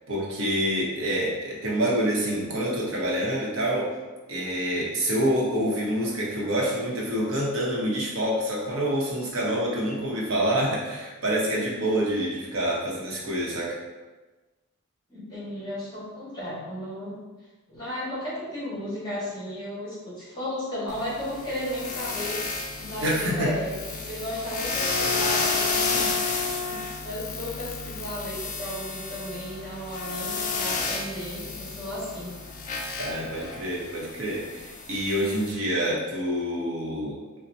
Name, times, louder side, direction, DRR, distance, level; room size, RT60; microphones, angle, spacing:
voice 1, 0.1-3.9 4.3-13.8 23.0-23.5 33.0-37.2, equal, 75° right, -4 dB, 0.9 m, -27 dB
voice 2, 15.1-17.1 17.7-22.4 22.8-23.8 24.0-32.3, equal, 20° left, -9 dB, 1.4 m, -34 dB
sound 1, 20.9-35.5, left 4 dB, 35° left, 0.3 m, -31 dB
4.2 x 2.1 x 2.6 m, 1.2 s
head